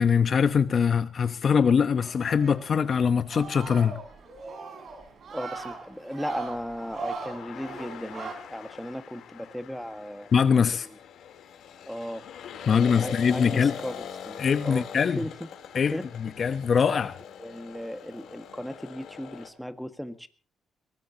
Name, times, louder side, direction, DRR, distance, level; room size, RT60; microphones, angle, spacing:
voice 1, 0.0-3.9 10.3-10.9 12.7-13.7 14.4-15.2 15.7-17.2, left 6 dB, 50° left, 1.0 m, -23 dB
sound 1, 2.0-8.3, right 4 dB, 55° right, 5.4 m, -40 dB
voice 2, 5.3-10.3 11.9-12.3 12.6-14.9 15.2-15.5 15.9-16.0 17.4-20.3, equal, ahead, 1.8 m, -36 dB
sound 2, 6.0-19.5, left 8 dB, 75° left, 3.5 m, -43 dB
22.0 x 18.5 x 2.9 m
cardioid pair, 90°, 0 cm